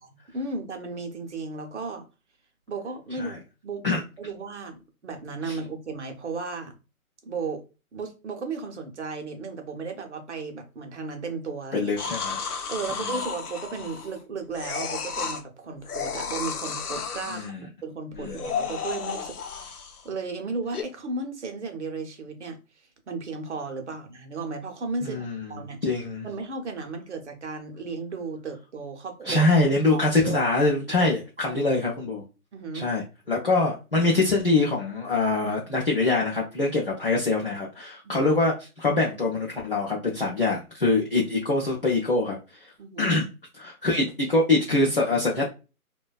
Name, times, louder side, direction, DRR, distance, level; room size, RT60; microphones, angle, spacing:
voice 1, 0.3-2.0 2.7-6.8 7.2-7.6 7.9-12.1 12.7-22.6 23.1-25.2 25.5-25.8 26.2-29.5 29.9-30.5 31.5-31.7 32.5-32.9 38.0-38.3 42.8-43.2, right 4 dB, 50° right, 0.7 m, -35 dB
voice 2, 11.7-12.7 17.3-17.7 18.2-18.4 25.0-26.3 29.3-32.2 32.7-42.4 43.0-43.3 43.6-45.5, left 2 dB, 40° left, 0.5 m, -24 dB
sound 1, 12.0-14.2 14.5-15.4 15.8-17.5 18.1-20.1 20.7-20.8, left 6 dB, 85° left, 0.6 m, -33 dB
2.5 x 2.2 x 2.3 m
hypercardioid pair, 165°, 44 cm